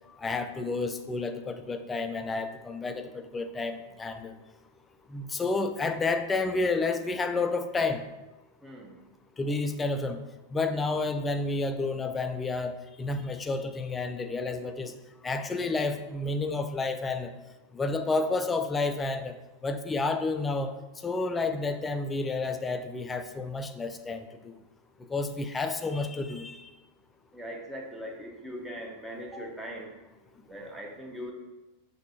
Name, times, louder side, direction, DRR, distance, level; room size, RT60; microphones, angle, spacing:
voice 1, 0.2-4.3 5.1-8.0 9.4-10.2 10.5-14.9 15.2-17.3 17.7-19.4 19.6-20.8 21.0-24.5 25.1-26.7, left 3 dB, 15° left, 8 dB, 0.3 m, -30 dB
voice 2, 8.6-9.0 27.3-29.9 30.5-31.3, equal, 5° right, 0 dB, 0.8 m, -40 dB
5.9 x 2.7 x 2.9 m, 1.1 s
figure-of-eight pair, 90°, 0 cm